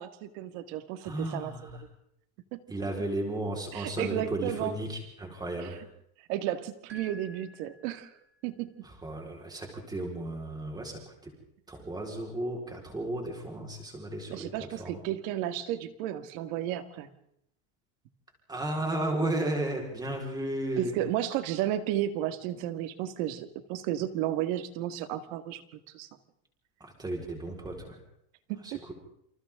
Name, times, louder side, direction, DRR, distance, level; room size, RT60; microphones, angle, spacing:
voice 1, 0.0-1.5 1.8-1.9 2.5-2.6 3.7-4.8 5.6-5.8 6.3-8.1 8.4-8.7 14.3-17.1 20.8-25.6 25.9-26.1 28.5-28.9, right 12 dB, 60° right, 9 dB, 2.1 m, -33 dB
voice 2, 1.0-1.7 2.7-5.8 8.8-11.3 11.7-14.5 14.8-15.0 18.5-21.0 26.8-28.0 28.6-28.7, right 1 dB, 10° right, 0 dB, 4.5 m, -34 dB
sound 1, 6.9-8.5, equal, 25° right, 6.4 m, -51 dB
28.5 x 27.0 x 3.8 m, 0.75 s
cardioid pair, 175°, 45 cm